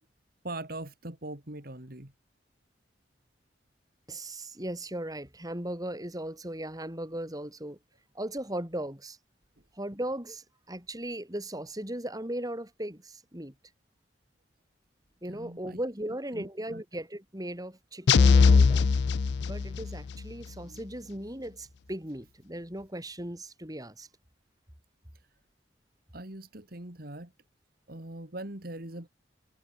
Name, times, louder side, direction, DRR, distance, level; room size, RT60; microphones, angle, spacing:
voice 1, 0.4-2.1 15.2-15.8 16.1-16.8 20.6-20.8 26.1-27.3 27.9-29.1, right 1 dB, 55° right, 2.9 m, -41 dB
voice 2, 4.1-7.8 8.2-9.2 9.8-13.5 15.2-18.9 19.4-24.1, right 1 dB, 20° right, 5.1 m, -37 dB
sound 1, 18.1-20.0, left 5 dB, 65° left, 0.4 m, -20 dB
head